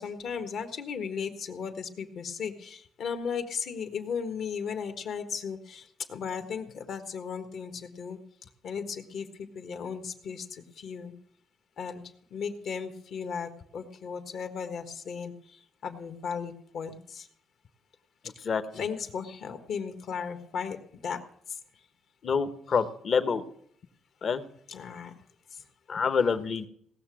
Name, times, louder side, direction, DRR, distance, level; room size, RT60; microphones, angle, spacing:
voice 1, 0.0-8.2 8.6-11.1 11.8-12.0 12.3-17.3 18.4-21.2 21.5-21.6 24.7-25.2 25.5-25.6, left 6 dB, 70° left, 6 dB, 1.5 m, -36 dB
voice 2, 22.2-23.4 24.2-24.4 25.9-26.7, left 5 dB, 50° left, 10 dB, 1.0 m, -26 dB
18.0 x 6.8 x 6.2 m, 0.66 s
cardioid pair, 90°, 0 cm